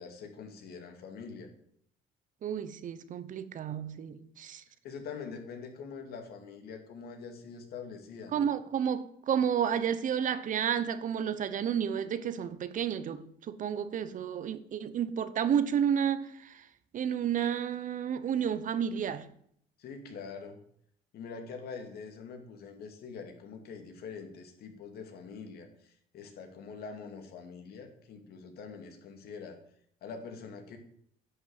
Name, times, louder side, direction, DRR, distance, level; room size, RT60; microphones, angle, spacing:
voice 1, 0.0-1.5 4.8-8.5 19.8-20.6 21.1-29.6 30.0-30.8, left 5 dB, 70° left, 2.4 m, -44 dB
voice 2, 2.4-4.6 8.3-16.7 16.9-19.3, right 8 dB, 50° right, 0.9 m, -31 dB
10.5 x 6.1 x 7.9 m
cardioid pair, 110°, 17 cm